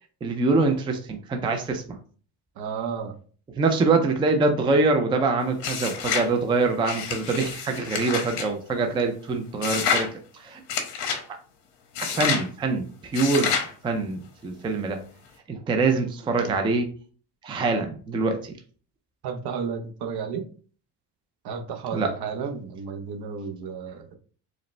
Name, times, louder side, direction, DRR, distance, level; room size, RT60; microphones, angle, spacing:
voice 1, 0.2-2.0 3.6-10.6 11.3-11.4 12.0-13.6 13.8-15.0 15.5-16.9 17.4-18.5 21.9-22.1, right 3 dB, 15° right, 5 dB, 0.3 m, -24 dB
voice 2, 2.6-3.1 19.2-20.4 21.4-24.2, right 6 dB, 65° right, 6 dB, 0.8 m, -32 dB
sound 1, 5.6-6.3 6.8-8.5 9.6-10.1 10.7-11.2 11.9-12.5 13.1-13.7, left 6 dB, 85° left, 1.0 m, -28 dB
4.9 x 2.1 x 3.1 m, 0.42 s
cardioid pair, 135°, 42 cm